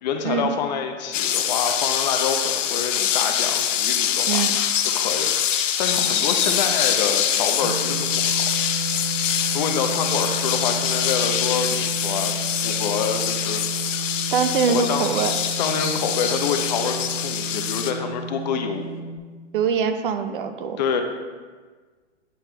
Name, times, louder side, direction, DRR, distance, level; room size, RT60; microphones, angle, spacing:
voice 1, 0.0-4.4 4.8-5.3 5.6-8.4 9.5-13.6 14.7-15.1 15.6-18.9 20.8-21.0, left 6 dB, 35° left, 5 dB, 0.5 m, -27 dB
sound 1, 1.1-17.9, left 9 dB, 85° left, 0.7 m, -24 dB
voice 2, 4.3-4.6 14.3-15.4 19.5-20.8, right 6 dB, 45° right, 9 dB, 0.5 m, -23 dB
sound 2, 5.4-7.7 14.1-14.2 14.5-16.9, left 5 dB, 60° left, 1.0 m, -33 dB
sound 3, 7.6-19.2, right 3 dB, 25° right, 1.1 m, -32 dB
9.2 x 5.7 x 2.2 m, 1.4 s
hypercardioid pair, 145°, 37 cm